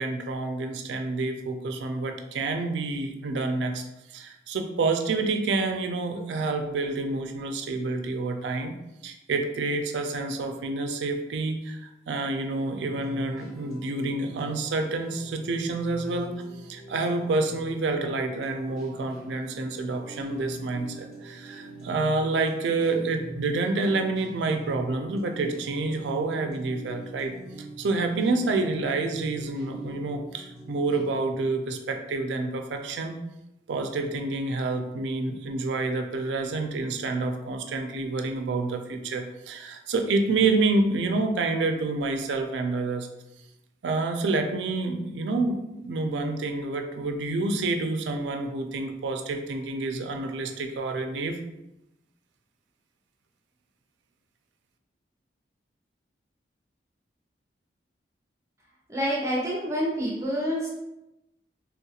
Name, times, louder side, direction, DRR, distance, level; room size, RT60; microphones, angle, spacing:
voice 1, 0.0-3.8 4.1-16.4 16.7-27.4 27.8-33.2 33.7-43.1 43.8-51.4, right 3 dB, 85° right, 5 dB, 0.4 m, -28 dB
sound 1, 12.3-31.2, right 1 dB, 55° left, 1.2 m, -43 dB
voice 2, 58.9-60.7, equal, 15° right, -5 dB, 0.6 m, -27 dB
3.4 x 2.3 x 2.8 m, 0.93 s
head